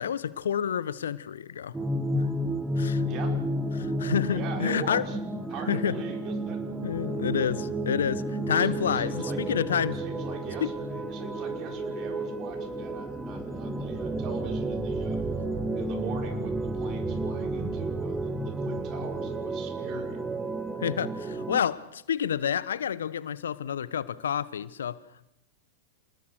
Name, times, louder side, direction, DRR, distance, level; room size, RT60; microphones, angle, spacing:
voice 1, 0.0-1.8 2.1-2.2 2.8-3.0 3.7-5.1 5.7-6.0 6.8-10.0 10.6-10.7 20.8-25.0, left 8 dB, 75° left, 1.0 m, -29 dB
sound 1, 1.7-21.6, right 1 dB, 10° right, 2.3 m, -31 dB
voice 2, 3.0-3.4 4.3-5.2 5.5-6.6 8.6-9.6 9.9-15.2 15.7-20.2, right 5 dB, 40° right, 5.7 m, -41 dB
28.5 x 20.0 x 6.3 m
figure-of-eight pair, 95°, 0 cm